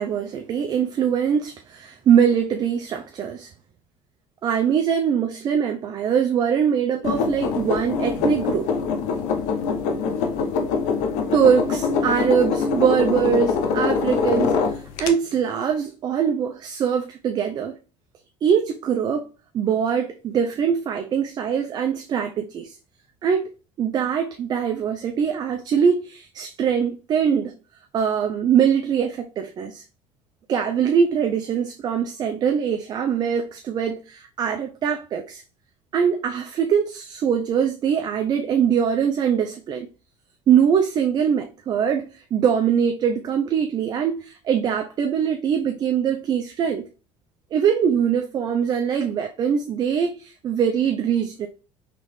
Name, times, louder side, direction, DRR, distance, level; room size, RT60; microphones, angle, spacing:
voice 1, 0.0-3.5 4.4-8.7 11.3-14.6 15.0-17.8 18.4-19.3 19.5-22.7 23.2-23.5 23.8-27.5 27.9-29.8 30.5-35.4 35.9-39.9 40.5-46.9 47.5-51.5, right 7 dB, 35° right, 0.4 m, -22 dB
sound 1, 7.0-15.1, left 5 dB, 75° left, 0.7 m, -24 dB
4.0 x 3.1 x 3.1 m
cardioid pair, 135°, 12 cm